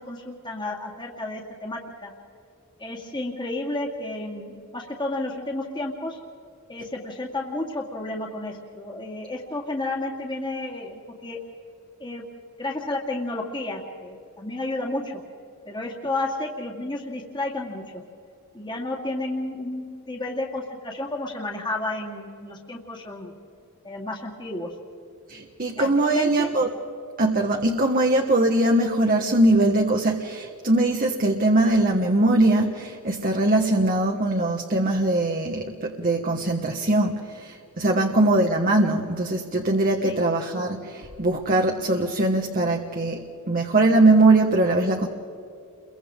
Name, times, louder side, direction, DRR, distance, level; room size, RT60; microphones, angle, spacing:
voice 1, 0.0-2.1 2.8-6.2 6.7-11.4 12.0-12.2 12.6-15.2 15.7-18.0 18.5-23.3 23.8-24.7 25.8-26.5 38.0-38.1 40.0-40.2, left 2 dB, 20° left, -1 dB, 2.2 m, -31 dB
voice 2, 25.3-26.7 27.2-45.1, right 2 dB, 40° right, 2 dB, 1.3 m, -21 dB
30.0 x 23.5 x 3.7 m, 2.7 s
head